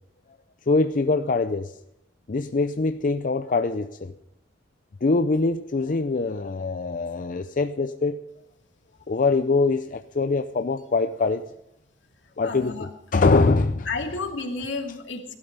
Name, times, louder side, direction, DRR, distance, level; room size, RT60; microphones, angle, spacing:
voice 1, 0.7-1.7 2.3-4.1 5.0-8.2 9.1-11.4 12.4-13.9, left 3 dB, 45° left, 0.5 m, -23 dB
voice 2, 12.4-12.9 13.9-15.3, left 3 dB, 75° left, 2.4 m, -31 dB
18.0 x 12.0 x 5.3 m
head